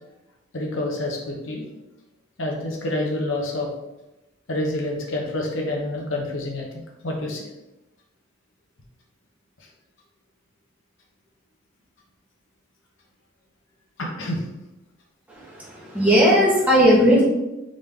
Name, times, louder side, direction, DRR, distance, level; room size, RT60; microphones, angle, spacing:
voice 1, 0.5-1.6 2.4-3.7 4.5-7.5 14.0-14.4, left 1 dB, 75° left, 0 dB, 0.9 m, -28 dB
voice 2, 15.3-17.2, equal, 10° right, -6 dB, 1.1 m, -17 dB
3.8 x 3.5 x 3.3 m, 0.94 s
head